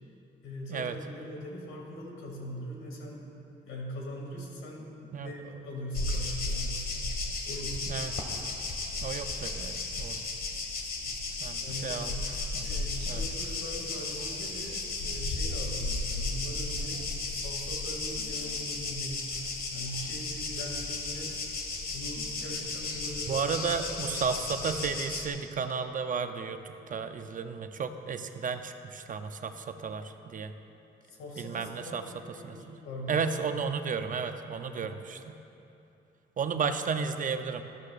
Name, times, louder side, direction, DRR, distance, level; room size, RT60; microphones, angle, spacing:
voice 1, 0.4-3.2 3.7-6.9 7.5-7.9 11.6-12.0 12.6-17.0 17.3-19.3 19.7-21.3 21.9-23.6 23.9-24.2 31.1-33.2 34.6-34.8, equal, 80° left, -1 dB, 2.4 m, -41 dB
sound 1, 5.9-25.3, left 3 dB, 50° left, 1.5 m, -34 dB
voice 2, 9.0-10.2 11.4-12.1 12.5-13.2 23.3-26.6 26.9-30.5 31.4-32.0 32.4-32.8 33.1-35.4 36.4-37.6, right 5 dB, 40° right, 8 dB, 0.6 m, -33 dB
13.5 x 13.0 x 2.5 m, 2.9 s
cardioid pair, 90°, 20 cm